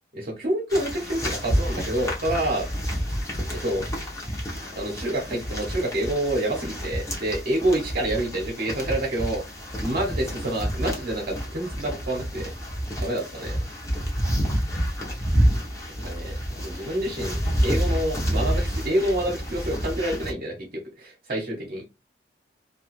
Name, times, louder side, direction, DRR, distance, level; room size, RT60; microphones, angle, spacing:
voice 1, 0.1-2.7 3.5-3.9 4.8-9.5 9.8-12.5 13.0-13.6 16.0-16.3 16.6-21.9, right 1 dB, 55° right, 0.8 m, -27 dB
sound 1, 0.7-20.3, equal, 15° left, 0.8 m, -29 dB
2.9 x 2.3 x 2.9 m
head